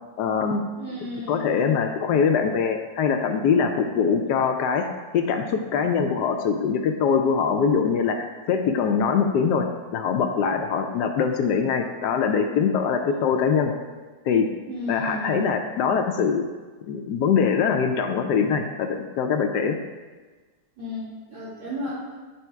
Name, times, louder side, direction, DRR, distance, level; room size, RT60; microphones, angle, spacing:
voice 1, 0.2-0.6 1.3-4.9 5.1-13.7 14.3-14.5 14.9-16.4 16.9-19.8, left 6 dB, 75° left, 5 dB, 1.1 m, -23 dB
voice 2, 0.7-1.7 14.7-15.4 20.8-21.9, left 1 dB, 80° right, -15 dB, 3.4 m, -33 dB
10.5 x 3.5 x 4.5 m, 1.3 s
omnidirectional pair, 2.0 m